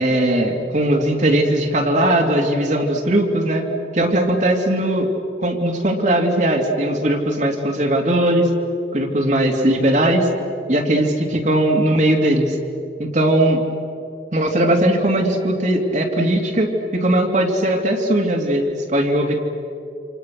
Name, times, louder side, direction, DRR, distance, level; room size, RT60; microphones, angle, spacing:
voice 1, 0.0-3.6 3.9-5.1 5.4-8.5 8.9-10.3 10.7-12.6 13.0-13.6 14.3-19.4, right 1 dB, 45° right, 1 dB, 2.8 m, -19 dB
29.0 x 27.0 x 6.5 m, 2.7 s
head